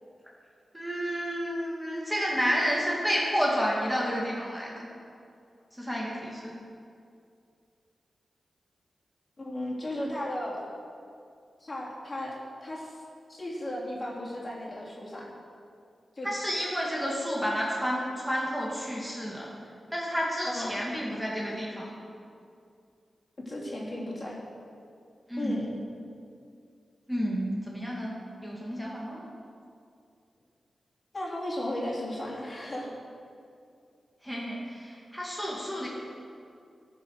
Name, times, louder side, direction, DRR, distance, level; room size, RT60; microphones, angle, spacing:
voice 1, 0.7-4.9 5.7-6.5 16.2-19.5 19.9-21.9 25.3-25.6 27.1-28.1 28.4-29.3 34.2-35.9, equal, ahead, -4 dB, 2.1 m, -30 dB
voice 2, 9.4-10.6 11.6-12.3 12.6-13.0 13.3-15.3 16.1-16.3 20.4-20.7 23.4-24.4 25.4-25.7 31.1-32.9, left 1 dB, 40° left, -5 dB, 3.3 m, -35 dB
13.5 x 6.1 x 6.4 m, 2.4 s
cardioid pair, 60°, 0 cm